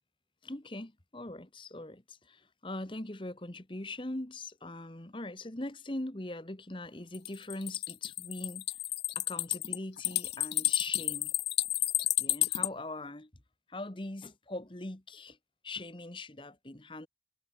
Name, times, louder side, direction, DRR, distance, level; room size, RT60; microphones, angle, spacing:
voice 1, 0.4-8.8 9.1-11.3 12.2-13.3 13.7-15.4 15.6-17.1, left 2 dB, 30° left, 1.3 m, -41 dB
sound 1, 7.1-12.7, left 15 dB, 65° left, 0.9 m, -31 dB
head